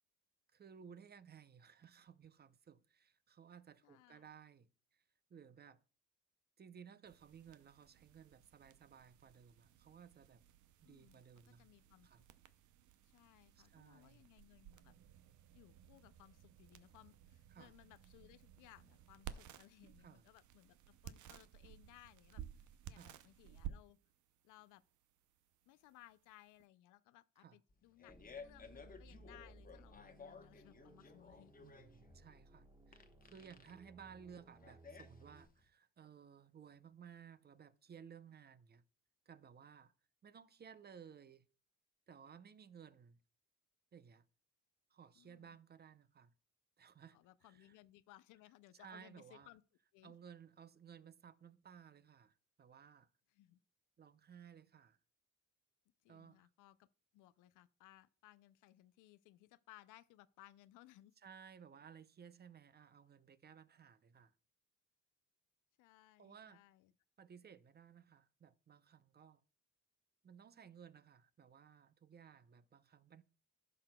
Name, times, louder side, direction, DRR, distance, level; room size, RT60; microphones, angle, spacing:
voice 1, 0.5-5.0 5.3-5.8 6.6-10.4 10.8-11.7 12.0-12.2 13.6-14.2 17.5-17.7 20.0-20.2 23.0-23.1 27.4-27.6 31.6-38.8 39.3-39.9 40.2-41.5 42.1-43.2 43.9-44.2 44.9-46.3 46.8-47.8 48.7-49.5 50.0-53.1 54.0-55.0 56.1-56.5 61.2-64.3 66.2-66.6 67.2-69.4 70.2-73.2, right 7 dB, 35° right, 0.6 m, -58 dB
voice 2, 3.8-4.3 10.8-12.2 13.0-14.9 15.5-20.8 21.0-24.0 24.4-24.8 25.7-31.5 45.2-45.6 47.1-49.6 49.9-50.2 53.3-53.6 56.0-56.9 57.1-61.1 65.8-66.9, left 16 dB, 90° left, 0.5 m, -63 dB
sound 1, 7.1-26.7, right 10 dB, 75° right, 0.6 m, -56 dB
Fart, 27.7-35.7, left 5 dB, 30° left, 1.0 m, -57 dB
sound 2, 28.1-35.5, right 2 dB, 15° right, 1.2 m, -62 dB
14.5 x 5.8 x 2.2 m
cardioid pair, 90°, 30 cm